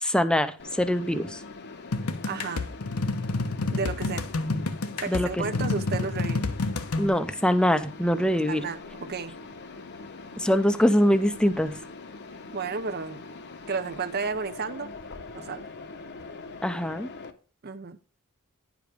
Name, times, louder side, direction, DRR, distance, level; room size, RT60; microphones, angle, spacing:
voice 1, 0.0-1.4 5.1-5.4 7.0-8.6 10.4-11.8 16.6-17.1, equal, 5° left, 0.5 m, -23 dB
Mechanisms, 0.6-17.3, left 3 dB, 50° left, 0.9 m, -43 dB
sound 1, 1.9-7.1, left 3 dB, 80° left, 0.9 m, -29 dB
voice 2, 2.2-2.7 3.7-4.3 5.0-6.4 8.5-9.3 12.5-13.2 13.7-14.9 15.3-15.6 17.6-18.0, right 4 dB, 45° right, 0.7 m, -32 dB
10.5 x 5.0 x 5.0 m
head